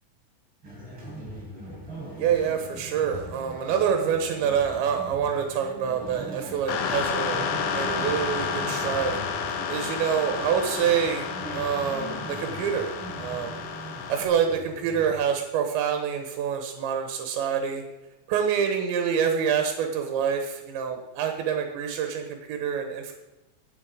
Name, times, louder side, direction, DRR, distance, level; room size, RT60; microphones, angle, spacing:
sound 1, 0.6-15.1, right 1 dB, 30° right, 4.9 m, -40 dB
voice 1, 2.2-9.2 9.7-13.6 14.1-17.8 18.3-23.1, right 7 dB, 90° right, 4 dB, 3.7 m, -27 dB
sound 2, 6.7-14.3, left 6 dB, 90° left, 3.7 m, -31 dB
22.0 x 8.2 x 5.1 m, 1.0 s
omnidirectional pair, 5.0 m